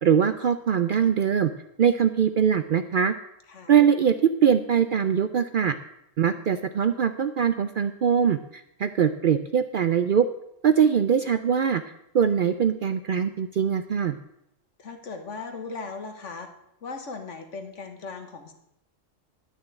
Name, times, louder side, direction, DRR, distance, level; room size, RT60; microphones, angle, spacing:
voice 1, 0.0-1.5 1.8-3.1 3.7-5.8 6.2-10.3 10.6-11.8 12.1-14.2, right 8 dB, 60° right, 10 dB, 0.6 m, -22 dB
voice 2, 14.8-16.5 16.8-18.5, left 4 dB, 70° left, 6 dB, 1.7 m, -38 dB
11.0 x 6.4 x 8.1 m, 0.82 s
omnidirectional pair, 1.3 m